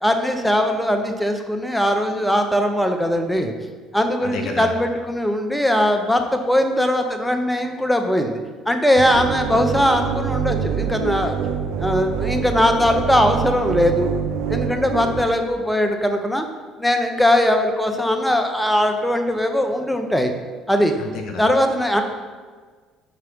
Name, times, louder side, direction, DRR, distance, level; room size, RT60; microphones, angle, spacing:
voice 1, 0.0-3.5 3.9-8.4 8.7-11.4 11.8-14.1 14.5-16.5 16.8-20.3 20.7-21.0 21.4-22.0, equal, 5° left, 5 dB, 0.5 m, -20 dB
voice 2, 4.2-4.7 21.0-21.4, left 5 dB, 55° left, 2 dB, 0.5 m, -30 dB
sound 1, 9.0-15.2, right 7 dB, 70° right, 0.4 m, -25 dB
5.7 x 2.9 x 3.1 m, 1.5 s
hypercardioid pair, 55°, 0 cm